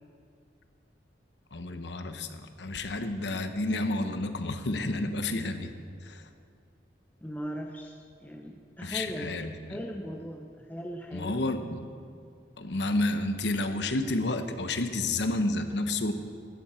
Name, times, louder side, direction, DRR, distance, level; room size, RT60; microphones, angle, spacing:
voice 1, 1.5-5.7 6.0-6.2 8.8-9.8 11.1-11.9 12.6-16.1, left 2 dB, 70° left, 8 dB, 0.9 m, -30 dB
voice 2, 7.2-9.3 9.7-11.4, equal, 10° left, 2 dB, 0.6 m, -38 dB
15.0 x 12.5 x 4.4 m, 2.4 s
head